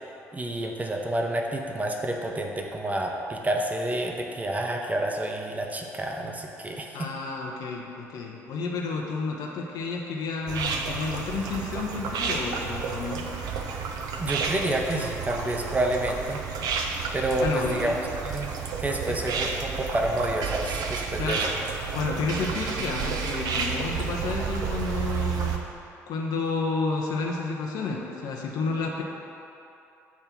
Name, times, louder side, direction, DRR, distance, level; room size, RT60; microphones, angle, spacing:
voice 1, 0.3-7.1 14.2-16.4 17.1-21.4, right 1 dB, 20° right, 1 dB, 0.9 m, -29 dB
voice 2, 6.9-13.2 17.4-17.9 21.2-21.5 21.9-25.6 26.1-29.0, left 4 dB, 60° left, 0 dB, 0.8 m, -30 dB
sound 1, 10.5-25.6, right 5 dB, 55° right, 0.7 m, -31 dB
8.2 x 3.3 x 5.9 m, 2.8 s
figure-of-eight pair, 50°, 8 cm